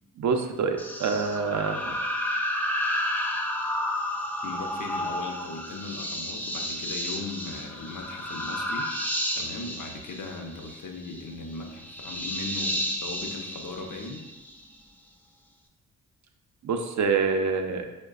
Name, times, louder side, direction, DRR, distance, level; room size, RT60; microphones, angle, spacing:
voice 1, 0.2-2.0 16.6-17.9, right 5 dB, 55° right, 5 dB, 0.5 m, -26 dB
sound 1, 0.8-14.6, left 1 dB, 5° left, 0.5 m, -31 dB
voice 2, 4.4-8.9 9.3-14.2, left 3 dB, 55° left, 3 dB, 0.6 m, -38 dB
4.5 x 2.2 x 2.3 m, 1.1 s
supercardioid pair, 50°, 35 cm